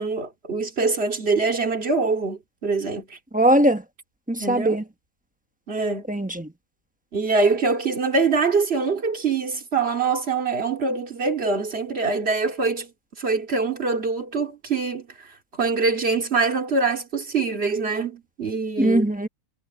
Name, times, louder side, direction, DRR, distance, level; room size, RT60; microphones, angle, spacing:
voice 1, 0.0-3.2 4.4-4.8 5.7-6.1 7.1-12.9 13.2-15.3 15.6-19.1, right 4 dB, 35° right, 2.8 m, -24 dB
voice 2, 3.3-3.8 4.3-4.8 6.1-6.5 18.8-19.3, right 1 dB, 5° right, 0.8 m, -20 dB
omnidirectional pair, 1.9 m